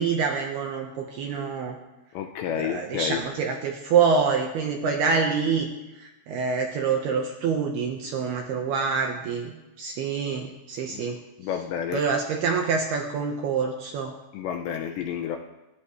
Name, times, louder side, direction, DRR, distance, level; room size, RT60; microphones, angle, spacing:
voice 1, 0.0-1.8 2.5-5.7 6.0-11.2 11.9-14.1, right 5 dB, 75° right, 2 dB, 2.5 m, -26 dB
voice 2, 2.1-3.2 10.9-11.0 11.4-12.0 14.3-15.4, left 9 dB, 80° left, 4 dB, 2.7 m, -30 dB
29.0 x 14.0 x 3.3 m, 1.0 s
omnidirectional pair, 5.9 m